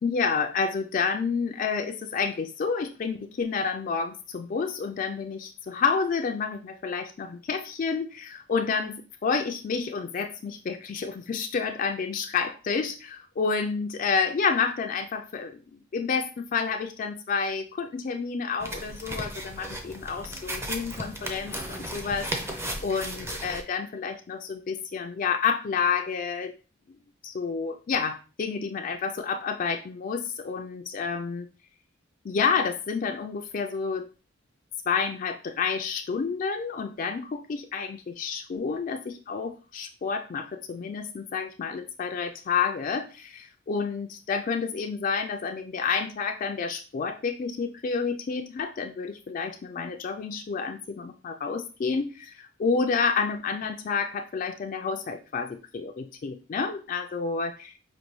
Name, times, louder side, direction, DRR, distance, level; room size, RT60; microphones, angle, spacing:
voice 1, 0.0-15.6 15.9-26.5 27.2-31.5 32.2-34.1 34.9-57.8, left 5 dB, 40° left, 5 dB, 0.3 m, -29 dB
sound 1, 18.6-23.6, right 1 dB, 15° right, 0.5 m, -35 dB
5.2 x 2.6 x 3.0 m, 0.35 s
head